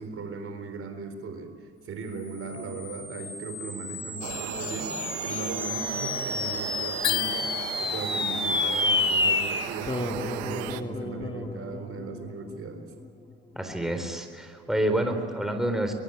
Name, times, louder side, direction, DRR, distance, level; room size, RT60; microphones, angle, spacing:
voice 1, 0.0-12.9, right 4 dB, 50° right, 7 dB, 3.9 m, -38 dB
sound 1, 2.4-13.1, left 2 dB, 15° left, 2.4 m, -31 dB
sound 2, 4.2-10.8, right 14 dB, 85° right, 1.2 m, -37 dB
sound 3, 7.0-8.2, left 14 dB, 65° left, 1.3 m, -30 dB
voice 2, 13.6-15.9, right 1 dB, ahead, 5 dB, 4.1 m, -28 dB
22.5 x 22.0 x 9.0 m, 2.3 s
supercardioid pair, 80°, 29 cm